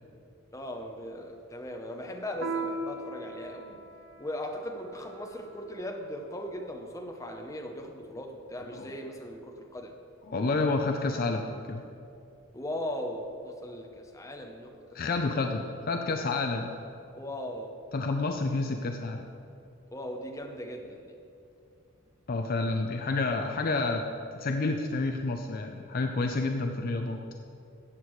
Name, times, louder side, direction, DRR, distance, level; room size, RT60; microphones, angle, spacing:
voice 1, 0.5-3.8 4.2-9.9 12.5-15.2 17.1-17.7 19.9-21.1, left 1 dB, 15° left, 2 dB, 0.8 m, -38 dB
Piano, 2.4-7.4, right 3 dB, 55° right, 0.8 m, -40 dB
voice 2, 10.3-11.8 14.9-16.8 17.9-19.2 22.3-24.0 24.3-27.2, left 3 dB, 45° left, 4 dB, 0.4 m, -29 dB
13.5 x 8.1 x 3.2 m, 2.6 s
head